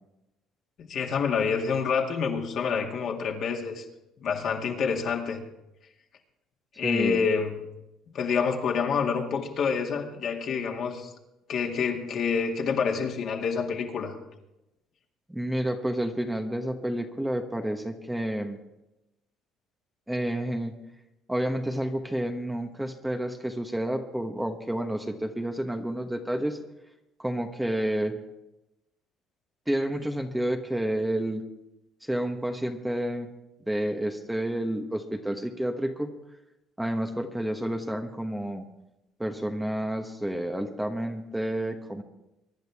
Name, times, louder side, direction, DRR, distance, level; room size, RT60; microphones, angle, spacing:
voice 1, 0.8-3.8 4.2-5.4 6.8-7.6 8.1-11.1 11.5-14.2, left 6 dB, 55° left, 1 dB, 2.2 m, -27 dB
voice 2, 6.8-7.2 15.3-18.6 20.1-20.8 21.3-26.6 27.2-28.2 29.7-31.4 32.0-33.3 33.7-36.1 36.8-38.7 39.2-42.0, right 1 dB, 5° right, 5 dB, 1.1 m, -30 dB
23.5 x 10.5 x 3.6 m, 0.93 s
cardioid pair, 100°, 0 cm